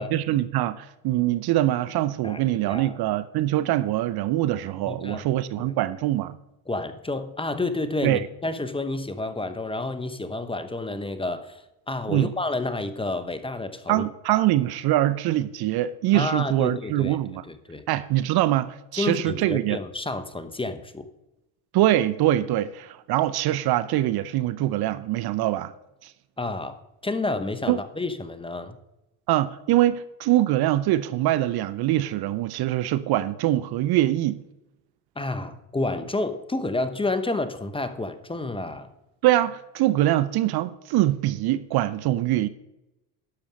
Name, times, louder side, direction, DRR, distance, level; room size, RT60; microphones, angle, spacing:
voice 1, 0.0-6.4 8.0-8.3 12.1-12.3 13.9-17.4 17.9-19.8 21.7-25.7 26.0-26.1 27.7-27.8 29.3-34.4 39.2-42.5, right 14 dB, 55° right, 0.7 m, -23 dB
voice 2, 2.2-3.0 4.9-5.3 5.6-5.7 6.7-11.6 11.9-14.0 14.3-14.4 16.1-17.2 17.5-17.8 19.0-21.1 26.4-28.8 35.2-38.9, left 2 dB, 10° left, 1.0 m, -30 dB
11.5 x 7.0 x 5.3 m
supercardioid pair, 85°, 46 cm